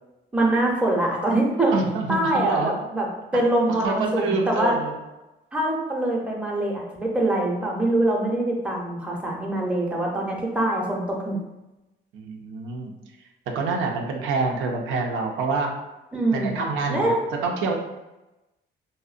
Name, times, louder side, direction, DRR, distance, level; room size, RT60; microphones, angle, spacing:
voice 1, 0.3-1.7 2.1-3.1 3.3-4.7 5.5-11.4 16.1-16.6 16.9-17.2, right 1 dB, 5° right, -2 dB, 0.5 m, -24 dB
voice 2, 1.7-2.7 3.8-4.9 12.1-12.9 13.5-15.7 16.3-17.1 17.4-17.7, right 3 dB, 90° right, 1 dB, 0.4 m, -26 dB
2.6 x 2.0 x 2.4 m, 1.0 s
cardioid pair, 90°, 20 cm